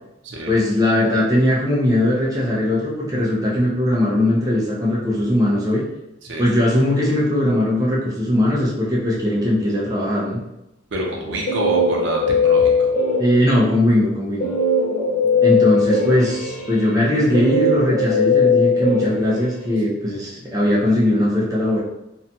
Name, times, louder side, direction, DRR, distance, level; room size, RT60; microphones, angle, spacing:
voice 1, 0.5-5.8 6.4-10.4 13.2-14.4 15.4-21.8, left 1 dB, 20° right, -5 dB, 0.5 m, -19 dB
voice 2, 10.9-12.9, right 1 dB, 65° right, -1 dB, 0.5 m, -27 dB
Guitar, 11.1-13.6 14.4-19.8, left 3 dB, 45° left, 0.5 m, -19 dB
2.6 x 2.2 x 2.7 m, 0.89 s
head